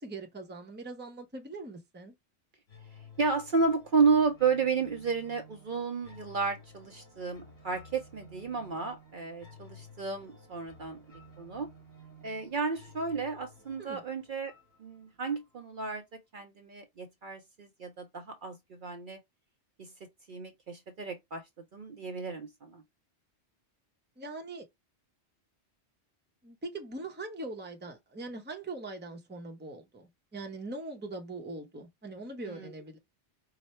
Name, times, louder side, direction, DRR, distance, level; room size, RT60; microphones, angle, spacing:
voice 1, 0.0-2.1 13.8-14.0 24.2-24.7 26.4-33.0, right 2 dB, 10° right, 0.7 m, -41 dB
sound 1, 2.7-15.7, left 1 dB, 60° left, 2.2 m, -54 dB
voice 2, 3.2-11.0 11.4-11.7 12.2-14.5 14.8-19.2 19.8-19.9 20.3-21.4 21.7-22.8 32.5-32.7, right 4 dB, 55° right, 0.7 m, -32 dB
4.8 x 2.1 x 4.2 m
omnidirectional pair, 1.2 m